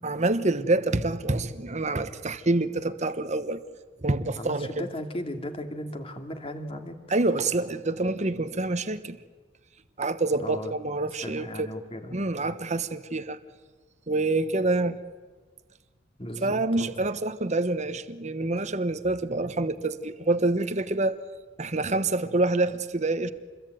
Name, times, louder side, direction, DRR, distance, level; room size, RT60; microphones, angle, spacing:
voice 1, 0.0-3.6 4.0-4.9 7.1-9.2 10.0-11.7 12.1-13.4 14.1-15.0 16.4-21.2 21.6-23.3, right 2 dB, 40° right, 1.2 m, -27 dB
voice 2, 4.3-7.0 10.4-10.7 11.2-12.1 12.4-12.6 16.2-17.1, equal, 30° left, 2.5 m, -36 dB
27.5 x 21.5 x 9.2 m
head